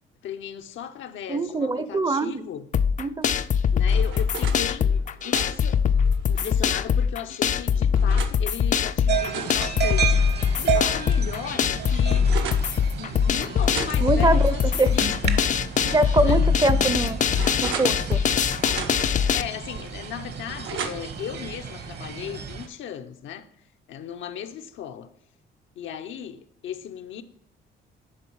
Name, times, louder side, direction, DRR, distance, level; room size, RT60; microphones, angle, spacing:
voice 1, 0.2-2.7 3.7-5.8 6.3-12.3 13.0-15.1 16.2-16.4 19.1-23.5 23.9-25.1 25.8-27.2, left 9 dB, 75° left, 0.7 m, -36 dB
voice 2, 1.3-2.5 3.0-3.3 14.0-14.9 15.8-17.2 17.6-18.2, right 2 dB, 20° right, 0.5 m, -23 dB
sound 1, 2.7-19.4, left 7 dB, 40° left, 0.4 m, -22 dB
sound 2, 3.4-4.6 5.1-6.7 7.3-8.4 9.0-10.7 11.1-11.2 11.5-12.7 13.6-15.4 15.8-15.9 16.5-18.3 18.6-19.3 19.8-21.3, right 6 dB, 80° right, 0.9 m, -38 dB
sound 3, 9.1-22.7, right 8 dB, 55° right, 1.0 m, -32 dB
10.0 x 3.9 x 4.6 m
cardioid pair, 90°, 20 cm